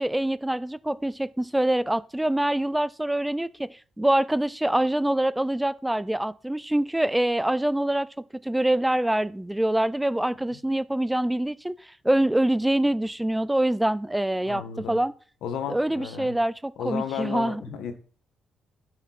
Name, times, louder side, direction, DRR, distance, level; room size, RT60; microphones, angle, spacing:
voice 1, 0.0-8.1 8.4-15.1 15.7-17.6, right 1 dB, 5° right, 0.4 m, -25 dB
voice 2, 14.5-15.0 15.4-16.3 16.8-17.9, left 7 dB, 85° left, 1.7 m, -33 dB
11.5 x 7.1 x 4.2 m
cardioid pair, 90°, 0 cm